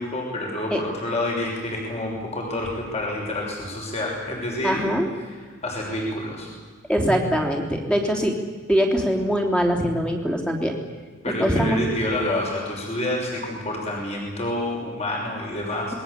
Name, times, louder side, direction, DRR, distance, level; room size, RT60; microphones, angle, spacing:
voice 1, 0.0-4.8 5.3-5.4 5.6-6.5 11.2-16.0, left 1 dB, 30° left, -1 dB, 6.2 m, -28 dB
voice 2, 4.6-5.1 6.9-8.3 8.7-10.7 11.4-11.8, equal, 5° left, 2 dB, 3.4 m, -22 dB
27.0 x 21.0 x 8.4 m, 1.5 s
head